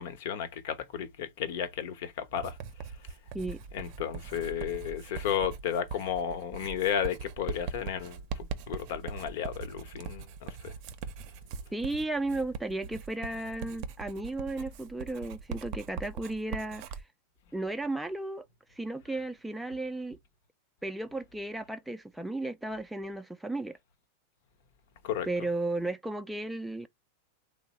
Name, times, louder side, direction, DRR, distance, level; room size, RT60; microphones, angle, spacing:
voice 1, 0.0-2.6 3.0-3.2 3.7-10.7 25.0-25.3, left 9 dB, 65° left, 0.8 m, -33 dB
Writing, 2.4-17.0, right 5 dB, 50° right, 0.5 m, -41 dB
voice 2, 11.7-16.8 17.5-18.4 18.8-20.2 20.8-23.8 25.3-26.9, right 2 dB, 5° right, 0.3 m, -34 dB
3.4 x 2.0 x 2.9 m
supercardioid pair, 130°, 0 cm